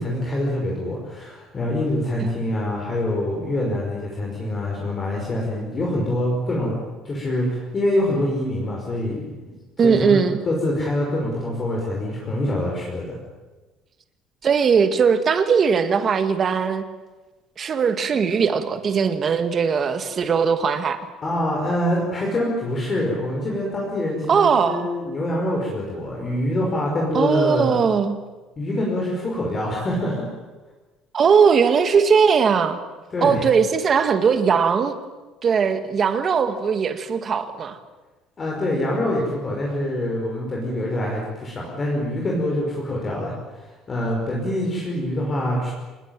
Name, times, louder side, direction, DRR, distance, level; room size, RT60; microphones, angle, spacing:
voice 1, 0.0-9.4 9.8-10.2 10.4-13.2 21.2-27.7 28.6-30.3 33.1-33.4 38.4-45.7, left 1 dB, 25° left, -2 dB, 5.3 m, -25 dB
voice 2, 9.8-10.4 14.4-16.9 17.6-21.0 24.3-24.9 27.1-28.2 31.1-32.8 33.2-35.0 35.4-37.8, right 6 dB, 30° right, 9 dB, 2.0 m, -19 dB
26.0 x 20.5 x 9.1 m, 1.2 s
cardioid pair, 160°, 0 cm